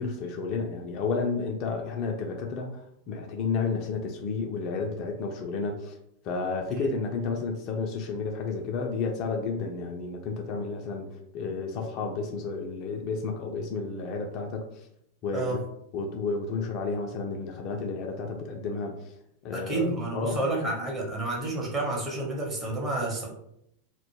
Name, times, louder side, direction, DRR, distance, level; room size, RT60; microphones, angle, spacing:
voice 1, 0.0-2.8 3.1-5.9 6.2-11.1 11.3-14.9 15.2-15.6 15.9-19.1 19.4-20.4, left 4 dB, 40° left, 2 dB, 0.4 m, -31 dB
voice 2, 19.5-23.3, right 2 dB, 20° right, -2 dB, 0.8 m, -30 dB
2.1 x 2.0 x 3.1 m, 0.76 s
figure-of-eight pair, 90°, 0 cm